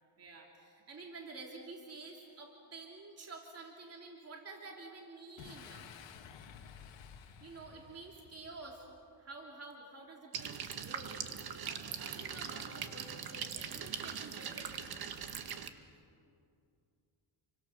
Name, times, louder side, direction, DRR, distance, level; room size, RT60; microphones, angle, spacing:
voice 1, 0.2-5.9 7.4-8.8 9.2-14.8, right 3 dB, 30° right, 0 dB, 3.2 m, -50 dB
Boom, 5.4-9.0, left 7 dB, 60° left, 2.2 m, -53 dB
sound 1, 10.3-15.7, right 7 dB, 50° right, 1.6 m, -41 dB
30.0 x 24.5 x 6.8 m, 2.4 s
cardioid pair, 130°, 50 cm